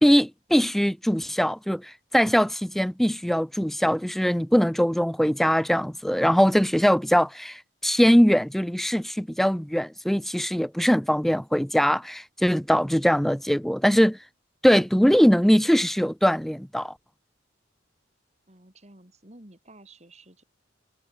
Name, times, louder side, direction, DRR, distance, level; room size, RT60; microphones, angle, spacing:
voice 1, 0.0-14.2 14.6-16.9, equal, ahead, 0.3 m, -21 dB
voice 2, 18.5-20.4, right 2 dB, 35° right, 3.1 m, -51 dB
head